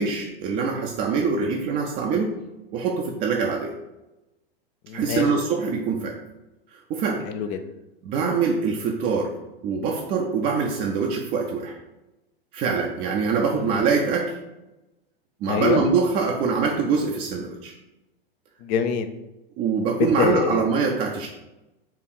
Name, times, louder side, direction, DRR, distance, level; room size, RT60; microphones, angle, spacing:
voice 1, 0.0-2.3 2.7-3.7 4.9-6.2 6.7-7.2 8.0-9.3 9.6-11.8 12.5-14.3 15.4-17.7 19.6-21.3, right 5 dB, 30° right, 0 dB, 0.5 m, -24 dB
voice 2, 4.9-5.2 7.3-7.6 15.5-15.8 18.6-19.1 20.2-20.6, left 7 dB, 30° left, 8 dB, 0.4 m, -24 dB
4.5 x 2.4 x 4.5 m, 0.98 s
figure-of-eight pair, 100°, 30 cm